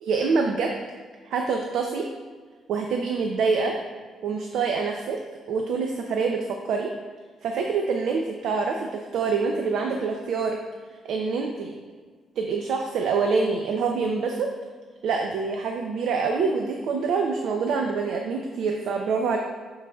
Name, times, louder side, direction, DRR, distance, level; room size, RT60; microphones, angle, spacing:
voice 1, 0.0-0.7 1.2-2.1 2.7-3.8 4.2-5.2 5.5-6.9 7.4-10.6 11.0-11.7 12.4-14.5 15.0-19.4, right 4 dB, 75° right, 3 dB, 0.5 m, -26 dB
12.5 x 4.7 x 2.3 m, 1.5 s
cardioid pair, 90°, 0 cm